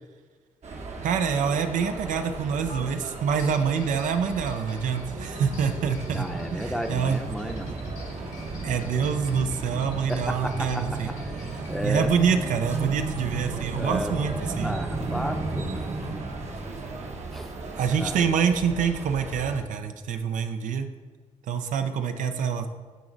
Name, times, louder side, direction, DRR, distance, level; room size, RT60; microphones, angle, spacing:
sound 1, 0.6-19.6, right 3 dB, 60° right, 1.1 m, -38 dB
voice 1, 1.0-7.2 8.6-11.1 11.8-14.7 17.7-20.9 21.5-22.7, right 6 dB, 75° right, 7 dB, 0.5 m, -26 dB
sound 2, 2.7-2.8 3.4-12.0, left 4 dB, 65° left, 1.1 m, -50 dB
sound 3, 5.0-18.1 18.4-18.5, right 2 dB, 30° right, 0.9 m, -35 dB
voice 2, 6.1-7.8 10.1-12.1 13.7-15.8 17.3-17.5 18.0-18.3, equal, ahead, 5 dB, 0.7 m, -33 dB
9.2 x 3.9 x 3.9 m, 1.4 s
cardioid pair, 65°, 13 cm